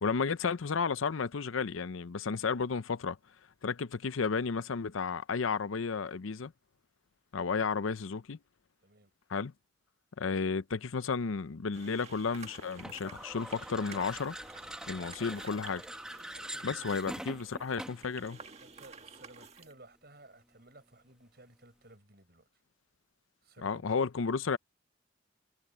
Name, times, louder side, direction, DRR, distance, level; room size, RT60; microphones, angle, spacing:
voice 1, 0.0-3.2 3.6-6.5 7.3-8.4 9.3-9.5 10.2-14.3 14.9-15.8 16.6-18.4 23.6-24.6, left 5 dB, 90° left, 0.6 m, -32 dB
sound 1, 11.7-19.7, right 4 dB, 35° right, 1.9 m, -52 dB
sound 2, 12.8-18.1, right 1 dB, 5° right, 1.6 m, -44 dB
voice 2, 16.3-16.8 18.6-22.5 23.4-24.1, right 2 dB, 50° right, 7.5 m, -57 dB
head